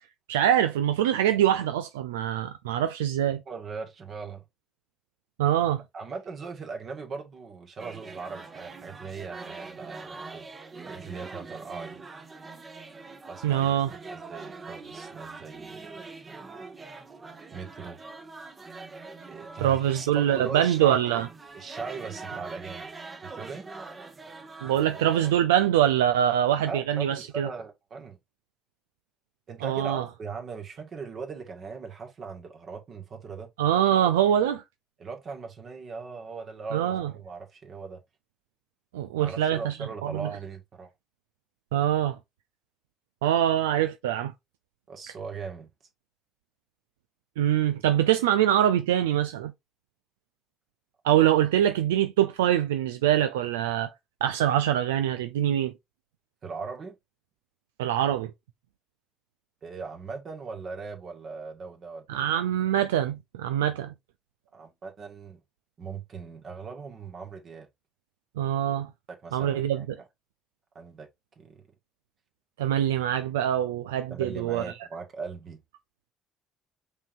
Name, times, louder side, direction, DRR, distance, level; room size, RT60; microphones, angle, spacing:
voice 1, 0.3-3.4 5.4-5.8 13.4-13.9 19.6-21.3 24.6-27.5 29.6-30.1 33.6-34.6 36.7-37.1 38.9-39.7 40.0-40.3 41.7-42.2 43.2-44.3 47.4-49.5 51.0-53.9 54.2-55.7 57.8-58.3 62.1-63.9 68.4-68.9 69.3-69.9 72.6-74.6, right 11 dB, 90° right, 0.3 m, -24 dB
voice 2, 3.5-4.4 5.9-10.5 10.8-12.0 13.3-13.7 14.1-15.9 17.5-18.0 19.2-21.1 21.5-22.9 23.2-23.7 26.7-28.2 29.5-33.5 35.0-38.0 39.2-40.9 44.9-45.7 56.4-56.9 59.6-62.3 64.5-65.4 65.8-67.7 69.1-70.0 70.7-71.1 71.4-71.6 74.1-75.6, right 5 dB, 50° right, 1.7 m, -39 dB
sound 1, 7.8-25.3, right 4 dB, 35° right, 1.2 m, -43 dB
5.4 x 3.7 x 2.6 m
hypercardioid pair, 55°, 0 cm